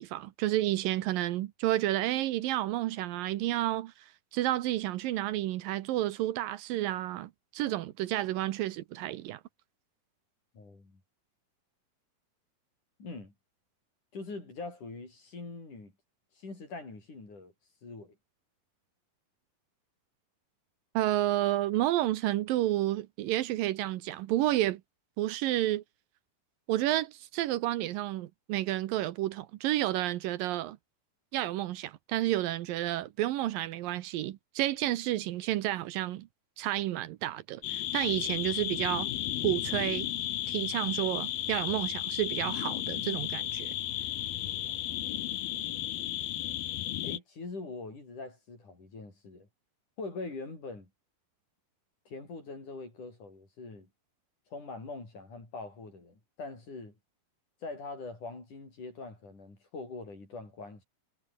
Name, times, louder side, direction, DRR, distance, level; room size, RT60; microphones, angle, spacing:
voice 1, 0.0-3.9 4.3-9.4 20.9-24.8 25.2-25.8 26.7-30.8 31.3-36.3 36.6-39.1 39.4-40.1 40.5-43.7, right 14 dB, 75° right, 2.5 m, -30 dB
voice 2, 10.5-11.0 13.0-13.3 14.1-15.9 16.4-17.5 17.8-18.2 44.7-45.2 47.0-49.5 50.0-50.9 52.1-53.9 54.5-56.9 57.6-60.8, left 3 dB, 55° left, 9.6 m, -43 dB
sound 1, 37.6-47.2, left 13 dB, 85° left, 3.3 m, -34 dB
omnidirectional pair, 4.2 m